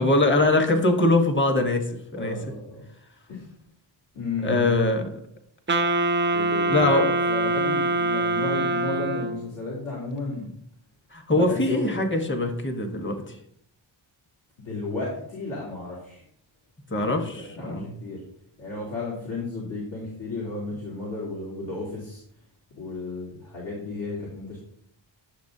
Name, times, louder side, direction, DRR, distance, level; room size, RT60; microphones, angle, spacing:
voice 1, 0.0-2.4 4.4-5.2 6.7-7.1 11.1-13.3 16.9-17.9, left 2 dB, 25° left, 5 dB, 1.1 m, -22 dB
voice 2, 2.2-2.8 3.3-3.5 4.1-4.7 6.3-10.5 11.3-12.0 14.6-16.2 16.9-18.2 18.6-22.2 22.8-24.6, left 3 dB, 70° left, -6 dB, 3.1 m, -33 dB
Wind instrument woodwind instrument, 5.7-9.5, right 2 dB, 25° right, 0.4 m, -24 dB
10.5 x 6.9 x 2.7 m, 0.70 s
wide cardioid pair, 80°, 47 cm